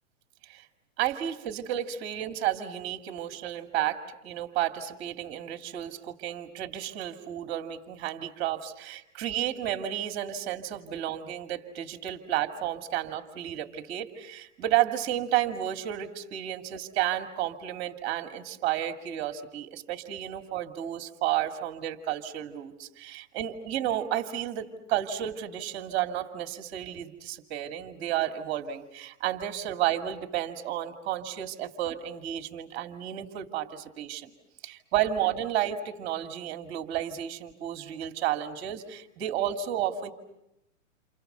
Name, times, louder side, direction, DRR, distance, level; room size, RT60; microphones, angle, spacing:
voice 1, 1.0-34.3 34.6-40.1, right 12 dB, 30° right, 7 dB, 2.4 m, -32 dB
29.5 x 29.0 x 6.8 m, 0.84 s
hypercardioid pair, 150°, 38 cm